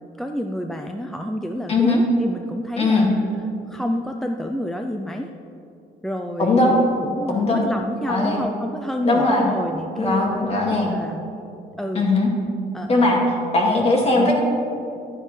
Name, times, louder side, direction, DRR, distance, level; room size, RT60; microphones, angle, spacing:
voice 1, 0.1-3.1 3.7-5.3 6.0-11.2 11.8-12.1 12.7-13.4 14.2-14.3, equal, ahead, 4 dB, 0.4 m, -29 dB
voice 2, 1.7-2.0 2.8-3.1 6.4-6.8 7.3-7.7 8.1-8.4 9.0-9.5 10.0-10.9 11.9-12.3 12.9-13.2 13.5-14.3, left 2 dB, 35° left, -1 dB, 2.1 m, -19 dB
12.0 x 9.7 x 3.3 m, 2.7 s
cardioid pair, 110°, 17 cm